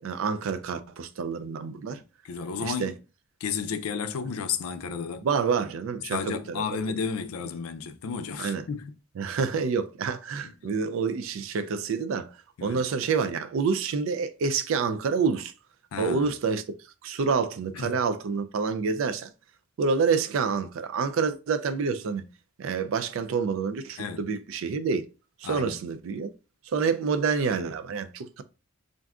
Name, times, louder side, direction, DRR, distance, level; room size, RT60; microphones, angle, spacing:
voice 1, 0.0-2.0 2.6-2.9 5.2-6.6 8.4-8.6 9.2-15.5 16.0-16.6 17.0-19.3 19.8-22.2 22.6-25.1 25.4-26.3 26.6-28.4, right 5 dB, 65° right, 0.3 m, -28 dB
voice 2, 2.2-2.9 3.4-5.3 6.1-8.9 10.4-10.5 12.6-12.8 15.9-16.3 17.7-17.9 24.0-24.2 25.4-25.8, left 6 dB, 80° left, 0.4 m, -32 dB
2.6 x 2.3 x 3.4 m
head